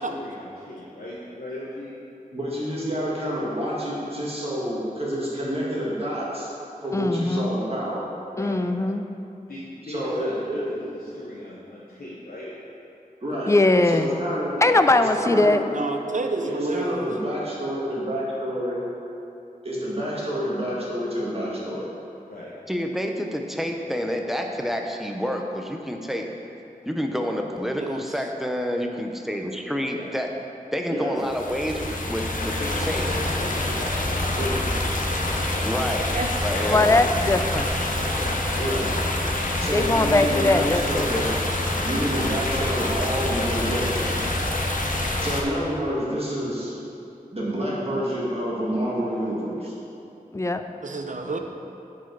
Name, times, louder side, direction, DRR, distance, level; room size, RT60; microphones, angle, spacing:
voice 1, 0.0-1.9 8.3-8.6 9.5-12.5 14.6-14.8 22.3-22.5 29.9-30.1 32.6-34.8 35.2-35.8 36.5-36.7 38.1-38.4 41.1-41.3 51.1-51.4, left 1 dB, 85° left, -7 dB, 1.0 m, -38 dB
voice 2, 2.3-6.5 6.8-8.0 9.8-10.7 13.2-13.5 13.8-14.5 14.9-15.6 16.4-18.8 19.6-21.9 30.9-31.2 34.3-34.6 36.7-37.0 38.6-38.9 39.6-41.3 41.8-44.3 45.2-46.7 47.3-49.7, equal, 40° right, -6 dB, 1.9 m, -28 dB
voice 3, 6.9-7.5 8.4-9.1 13.5-14.1 14.6-15.6 36.6-37.7 39.7-41.1 50.3-50.6, left 2 dB, 20° left, 8 dB, 0.4 m, -20 dB
voice 4, 15.7-17.1 27.8-28.1 36.1-36.3 36.7-36.8 50.8-51.4, right 3 dB, 55° right, 5 dB, 0.7 m, -29 dB
voice 5, 22.7-26.3 26.8-30.3 30.7-32.6 32.9-33.1 35.6-36.0 36.4-36.9, equal, ahead, 2 dB, 0.8 m, -28 dB
sound 1, 31.2-45.4, left 1 dB, 65° left, 0.9 m, -26 dB
10.0 x 4.8 x 4.7 m, 2.8 s
wide cardioid pair, 60°, 15 cm